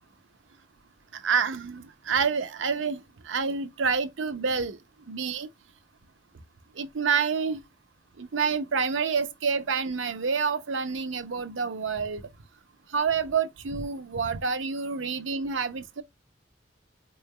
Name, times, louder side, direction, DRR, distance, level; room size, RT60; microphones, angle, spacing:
voice 1, 1.1-4.8 5.1-5.5 6.8-7.6 8.2-12.3 12.9-16.0, right 5 dB, 80° right, 0.7 m, -28 dB
4.6 x 3.2 x 2.3 m
head